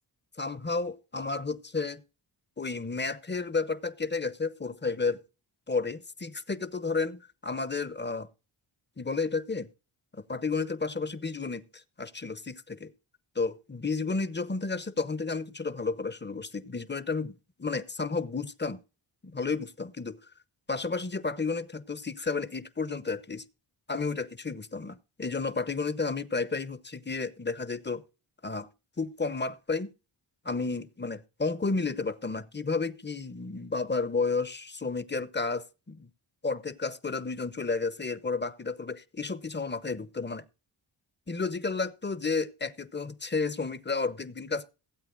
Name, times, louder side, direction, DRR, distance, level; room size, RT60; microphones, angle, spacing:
voice 1, 0.4-2.0 2.6-5.2 5.7-8.3 9.0-9.7 10.3-12.9 13.4-17.3 17.6-18.8 19.2-20.2 20.7-23.4 23.9-28.0 28.4-28.7 29.0-29.9 30.4-36.1 36.4-40.4 41.3-44.7, left 4 dB, 20° left, 0.8 m, -32 dB
16.0 x 8.2 x 3.8 m
cardioid pair, 45°, 48 cm